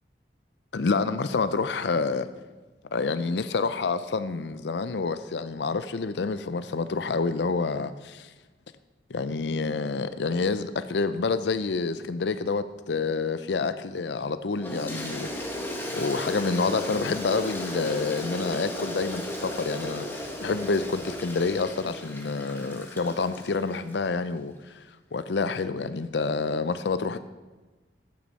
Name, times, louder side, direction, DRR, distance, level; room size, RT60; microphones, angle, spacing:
voice 1, 0.7-2.3 2.9-8.3 9.1-15.3 15.9-24.8 25.1-27.2, left 4 dB, 80° left, 13 dB, 0.5 m, -28 dB
Toilet flush, 14.6-24.0, left 1 dB, 10° left, 1.5 m, -35 dB
15.0 x 9.5 x 4.1 m, 1.2 s
head